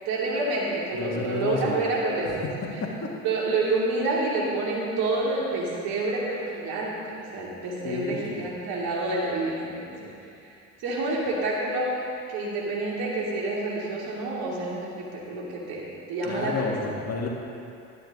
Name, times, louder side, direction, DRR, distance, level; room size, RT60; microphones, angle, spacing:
voice 1, 0.1-2.5 3.2-10.1 10.8-11.9 12.3-16.7, right 2 dB, 65° right, -4 dB, 2.6 m, -28 dB
voice 2, 0.9-1.8 2.3-2.4 2.8-3.1 7.8-8.2 16.2-17.3, left 4 dB, 40° left, -1 dB, 1.8 m, -30 dB
12.5 x 9.7 x 3.7 m, 2.5 s
hypercardioid pair, 70°, 40 cm